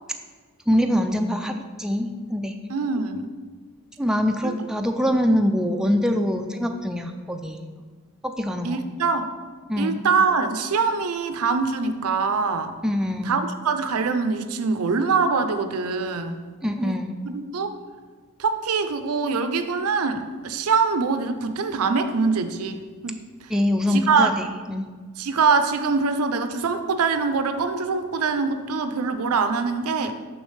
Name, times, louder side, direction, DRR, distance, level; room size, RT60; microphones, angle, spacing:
voice 1, 0.7-2.5 4.0-7.6 8.2-8.8 9.7-10.0 12.8-13.3 16.6-17.1 23.5-24.9, equal, 5° right, 4 dB, 0.3 m, -24 dB
voice 2, 2.7-3.3 4.4-4.5 8.6-9.3 9.8-12.8 13.2-16.4 16.8-17.0 17.2-17.7 18.4-23.5 23.9-24.3 25.2-30.1, right 4 dB, 80° right, 9 dB, 0.5 m, -24 dB
6.3 x 6.1 x 3.2 m, 1.5 s
head